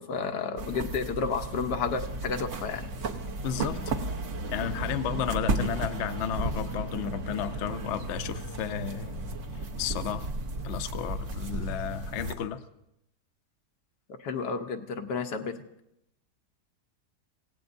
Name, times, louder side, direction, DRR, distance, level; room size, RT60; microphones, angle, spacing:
voice 1, 0.0-2.9 14.2-15.6, left 5 dB, 85° left, 5 dB, 1.6 m, -31 dB
sound 1, 0.6-12.3, right 2 dB, 55° right, 1.3 m, -34 dB
voice 2, 3.4-3.9 4.5-9.2 9.8-10.2 10.6-12.6, left 9 dB, 60° left, 9 dB, 0.8 m, -33 dB
27.5 x 17.0 x 2.6 m, 0.83 s
omnidirectional pair, 1.7 m